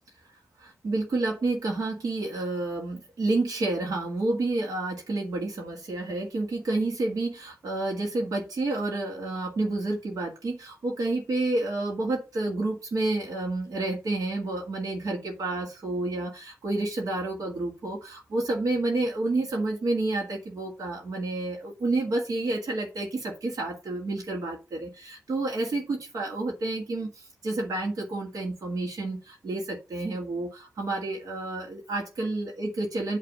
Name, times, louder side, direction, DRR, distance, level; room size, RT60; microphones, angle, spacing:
voice 1, 0.6-33.2, right 2 dB, 80° right, -1 dB, 2.0 m, -29 dB
8.6 x 3.3 x 6.2 m, 0.28 s
wide cardioid pair, 175°, 6 cm